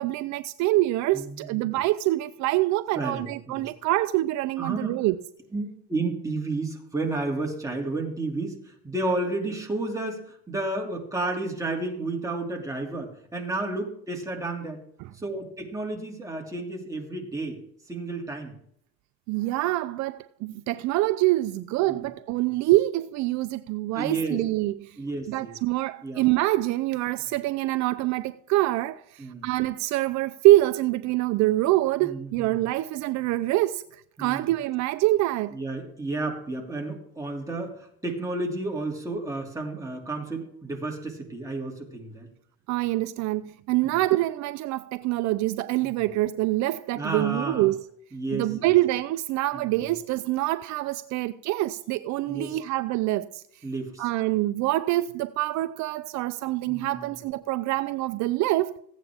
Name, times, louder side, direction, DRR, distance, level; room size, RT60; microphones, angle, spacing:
voice 1, 0.0-5.2 15.0-15.1 19.3-25.0 25.3-33.8 34.2-35.6 42.7-47.9 48.3-53.4 54.0-58.7, right 17 dB, 65° right, 0.5 m, -25 dB
voice 2, 1.1-1.7 2.9-3.7 4.6-5.0 5.5-14.8 15.1-17.6 17.9-18.5 21.9-22.1 22.4-22.5 23.9-24.4 25.0-25.6 26.0-26.2 29.2-29.5 32.0-32.6 34.2-34.5 35.5-42.3 43.8-44.0 45.8-46.1 46.9-47.7 48.1-48.7 49.5-49.9 52.3-52.6 53.6-54.1 56.7-57.2, right 2 dB, 10° right, 2.7 m, -32 dB
15.5 x 9.1 x 3.6 m
cardioid pair, 115°, 31 cm